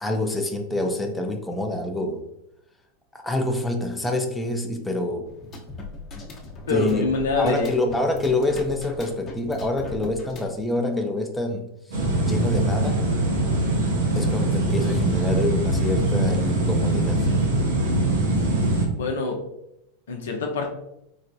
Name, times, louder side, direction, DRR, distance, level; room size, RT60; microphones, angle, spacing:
voice 1, 0.0-2.2 3.1-5.3 5.8-5.9 6.1-6.3 6.7-7.1 7.4-13.0 14.2-17.3, left 2 dB, 10° left, 3 dB, 0.4 m, -26 dB
sound 1, 5.2-10.6, left 2 dB, 35° left, 0.8 m, -39 dB
voice 2, 6.7-7.9 19.0-19.4 20.1-20.7, left 3 dB, 80° left, 3 dB, 0.6 m, -25 dB
sound 2, 11.9-18.8, right 2 dB, 80° right, 0.8 m, -22 dB
3.9 x 2.1 x 2.6 m, 0.82 s
hypercardioid pair, 100°, 0 cm